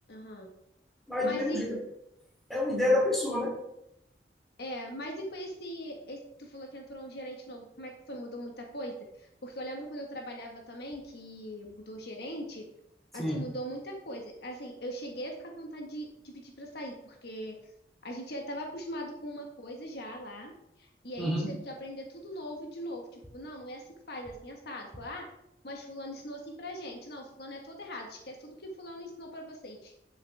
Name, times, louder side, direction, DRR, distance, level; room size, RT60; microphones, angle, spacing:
voice 1, 0.1-0.5 1.2-1.6 4.6-12.6 13.1-17.5 18.0-20.5 20.8-25.3 25.6-29.9, equal, 65° left, 1 dB, 1.7 m, -41 dB
voice 2, 1.1-1.8 2.5-3.5 13.2-13.4 21.2-21.5, left 1 dB, ahead, -3 dB, 3.1 m, -28 dB
11.5 x 6.9 x 3.5 m, 0.80 s
head